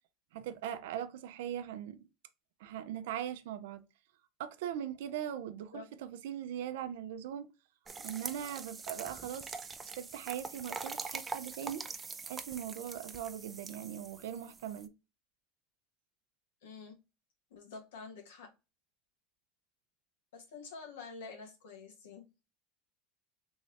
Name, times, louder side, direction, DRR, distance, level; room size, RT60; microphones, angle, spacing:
voice 1, 0.3-2.1 2.6-3.8 4.4-7.5 8.0-9.6 10.0-11.8 12.3-14.9, right 10 dB, 80° right, 0.5 m, -40 dB
sound 1, 7.9-14.9, right 4 dB, 20° right, 0.4 m, -44 dB
voice 2, 16.6-16.9 17.5-18.5 20.3-22.2, left 4 dB, 90° left, 1.4 m, -48 dB
3.5 x 2.8 x 3.1 m
supercardioid pair, 115°, 0 cm